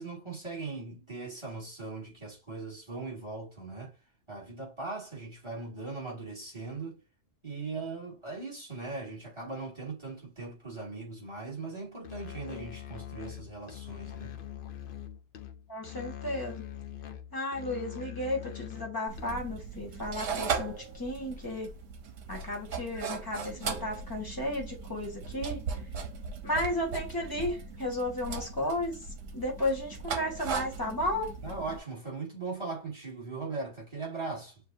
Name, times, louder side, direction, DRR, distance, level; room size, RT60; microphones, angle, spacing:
voice 1, 0.0-4.0 4.3-7.0 7.4-14.4 31.4-34.6, right 3 dB, 25° right, 2.2 m, -39 dB
Musical instrument, 12.0-19.6, left 10 dB, 55° left, 0.7 m, -43 dB
voice 2, 15.7-16.6 17.3-21.7 22.3-25.6 26.4-29.0 29.3-31.3, left 1 dB, 15° left, 1.5 m, -33 dB
sound 1, 19.1-31.8, right 5 dB, 85° right, 1.2 m, -38 dB
6.7 x 2.6 x 2.6 m
omnidirectional pair, 1.3 m